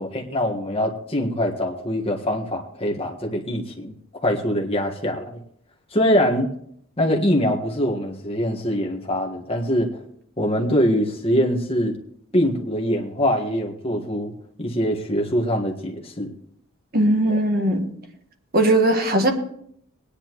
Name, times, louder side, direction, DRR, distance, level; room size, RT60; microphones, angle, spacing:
voice 1, 0.0-3.9 4.2-5.3 5.9-6.5 7.0-9.9 10.4-11.9 12.3-14.3 14.6-16.3 17.3-17.4, equal, 25° left, 0 dB, 1.5 m, -23 dB
voice 2, 16.9-17.9 18.5-19.3, right 1 dB, 45° right, 4 dB, 1.5 m, -19 dB
20.0 x 10.0 x 3.1 m, 0.68 s
head